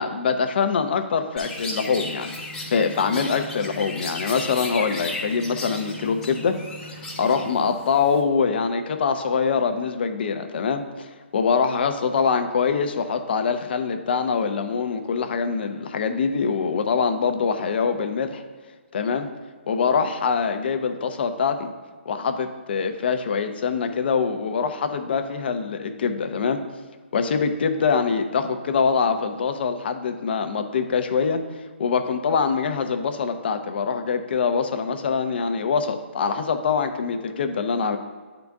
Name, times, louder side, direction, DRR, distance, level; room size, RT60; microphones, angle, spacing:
voice 1, 0.0-2.3 2.7-6.6 7.2-11.1 11.3-18.4 18.9-19.3 19.7-21.7 22.1-26.6 27.1-31.4 31.8-38.0, left 5 dB, 55° left, 7 dB, 0.7 m, -24 dB
Chirp tweet, 1.4-8.2, left 2 dB, 5° left, 1.0 m, -35 dB
9.2 x 3.9 x 3.5 m, 1.4 s
hypercardioid pair, 160°, 7 cm